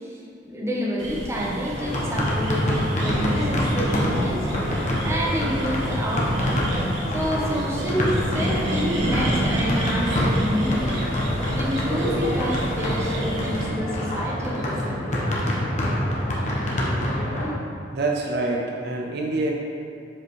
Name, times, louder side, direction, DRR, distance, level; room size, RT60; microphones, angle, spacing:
voice 1, 0.0-2.7 3.0-4.5 5.0-6.6 7.1-11.0 11.5-15.1, equal, 15° right, -4 dB, 1.0 m, -28 dB
sound 1, 1.0-13.7, right 1 dB, 85° right, 1.3 m, -30 dB
sound 2, 1.7-17.5, equal, 40° left, 1.0 m, -26 dB
sound 3, 9.0-13.0, left 1 dB, 80° left, 1.0 m, -42 dB
voice 2, 17.9-19.5, right 2 dB, 60° right, -1 dB, 0.6 m, -26 dB
7.6 x 5.0 x 3.2 m, 2.4 s
head